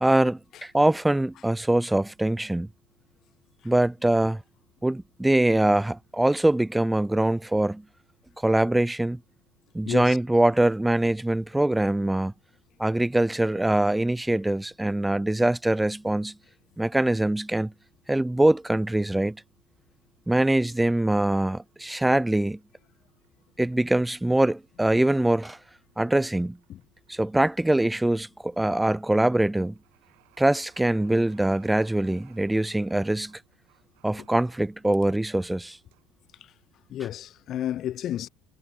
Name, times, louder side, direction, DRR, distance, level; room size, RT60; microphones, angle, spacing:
voice 1, 0.0-2.7 3.6-4.4 4.8-7.8 8.4-9.2 9.7-12.3 12.8-16.3 16.8-17.7 18.1-19.4 20.3-22.6 23.6-25.6 26.0-26.6 27.1-29.7 30.4-33.4 34.0-35.8, right 1 dB, 5° right, 0.5 m, -23 dB
voice 2, 9.8-10.2 26.7-26.8 34.2-34.3 36.4-36.5 36.9-38.3, left 11 dB, 50° left, 0.5 m, -32 dB
sound 1, 21.0-37.0, right 40 dB or more, 70° right, 6.7 m, -65 dB
hypercardioid pair, 75°, 0 cm